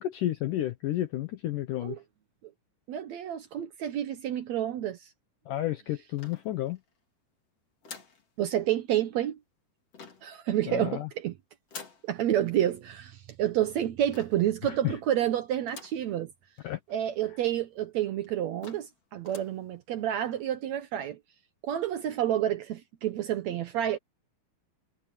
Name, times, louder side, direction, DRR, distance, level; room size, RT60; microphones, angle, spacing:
voice 1, 0.0-2.0 5.5-6.8 10.7-11.1 14.8-14.9 16.6-16.8, left 14 dB, 70° left, 2.2 m, -31 dB
voice 2, 2.9-5.0 8.4-9.4 10.2-11.4 12.0-16.3 16.9-21.2 21.6-24.0, right 11 dB, 80° right, 1.5 m, -29 dB
sound 1, 6.2-6.9 7.8-8.3 9.9-10.4 11.7-12.1 14.1-14.5 15.7-16.1 16.6-16.7 16.9-17.0 17.7-17.8 18.2-18.3 18.6-19.0 19.2-19.6, left 5 dB, 40° left, 4.1 m, -47 dB
omnidirectional pair, 4.5 m